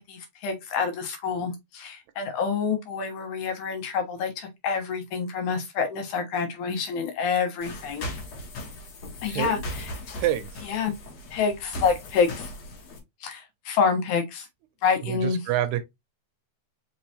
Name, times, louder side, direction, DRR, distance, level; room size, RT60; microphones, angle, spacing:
voice 1, 0.1-8.1 9.2-10.2 10.6-10.9 11.3-12.5 13.2-14.5 14.8-15.4, left 6 dB, 80° left, 2.5 m, -27 dB
sound 1, 7.6-13.0, left 1 dB, 65° left, 2.5 m, -38 dB
voice 2, 9.3-9.6 10.2-10.7 15.1-15.8, right 12 dB, 80° right, 1.8 m, -27 dB
5.4 x 3.3 x 2.8 m
omnidirectional pair, 3.5 m